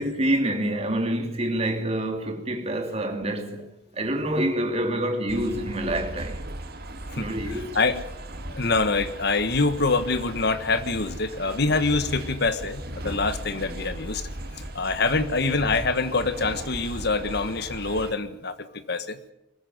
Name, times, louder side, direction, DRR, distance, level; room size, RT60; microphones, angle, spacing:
voice 1, 0.0-3.7 3.9-6.4 7.1-7.8, right 1 dB, 30° right, 3.0 m, -27 dB
sound 1, 5.3-18.1, right 1 dB, 50° right, 1.9 m, -37 dB
voice 2, 7.1-8.0 8.4-14.3 14.6-19.2, left 3 dB, 55° left, 1.5 m, -25 dB
21.5 x 14.5 x 9.6 m
head